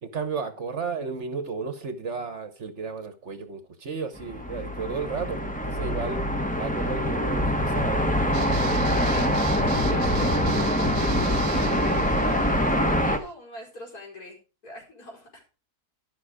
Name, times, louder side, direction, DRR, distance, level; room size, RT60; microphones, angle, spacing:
voice 1, 0.0-6.2 6.6-8.1, right 5 dB, 50° right, 9 dB, 1.3 m, -33 dB
sound 1, 4.2-13.2, equal, 5° left, 1.0 m, -24 dB
sound 2, 8.3-13.3, right 8 dB, 70° right, 1.3 m, -37 dB
voice 2, 9.0-14.4 14.6-15.6, left 1 dB, 70° left, -2 dB, 5.0 m, -43 dB
12.5 x 5.9 x 4.9 m, 0.33 s
omnidirectional pair, 1.7 m